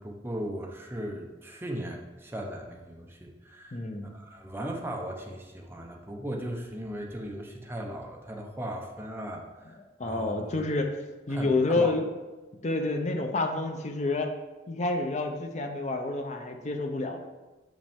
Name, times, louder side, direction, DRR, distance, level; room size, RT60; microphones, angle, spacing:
voice 1, 0.0-10.8 11.3-11.9, right 1 dB, 15° right, 1 dB, 0.7 m, -38 dB
voice 2, 3.7-4.1 10.0-11.0 11.3-12.1 12.6-14.3 14.7-17.3, left 2 dB, 40° left, 4 dB, 0.6 m, -29 dB
7.5 x 5.1 x 3.6 m, 1.2 s
head